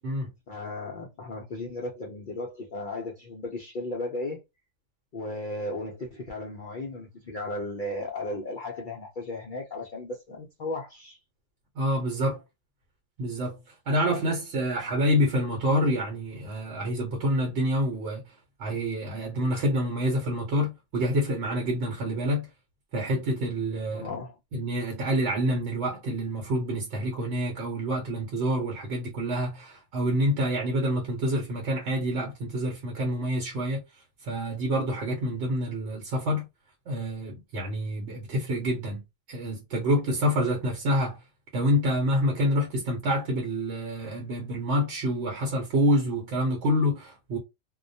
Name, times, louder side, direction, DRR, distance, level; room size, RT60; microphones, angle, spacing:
voice 1, 0.5-4.4 5.1-11.2 23.9-24.4, left 2 dB, 60° left, 0.5 m, -35 dB
voice 2, 11.8-12.4 13.2-13.6 13.9-18.2 18.6-22.5 22.9-24.1 24.5-33.8 34.2-36.4 36.9-39.0 39.3-41.2 41.5-47.4, equal, 65° right, 1.0 m, -27 dB
2.2 x 2.1 x 2.6 m
omnidirectional pair, 1.3 m